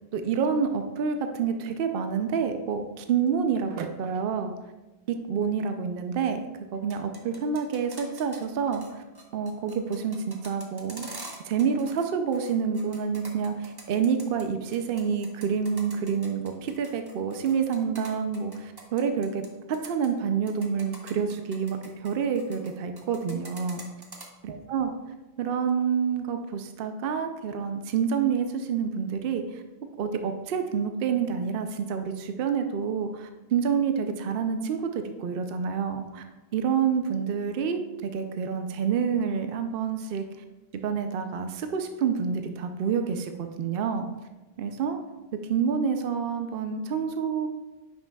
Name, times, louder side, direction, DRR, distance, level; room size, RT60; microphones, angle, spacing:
voice 1, 0.1-4.5 5.1-9.0 9.3-11.1 11.4-19.4 19.7-23.8 24.4-24.9 25.4-29.6 30.0-36.2 36.5-40.2 40.8-44.1 44.6-45.0 45.5-47.5, right 6 dB, 65° right, 6 dB, 0.7 m, -28 dB
sound 1, 6.7-8.4 8.7-8.9 9.1-12.0 12.3-14.4 14.7-19.5 19.7-20.1 20.5-22.7 23.0-24.3, right 2 dB, 25° right, 0.9 m, -44 dB
9.8 x 5.8 x 2.2 m, 1.1 s
omnidirectional pair, 1.1 m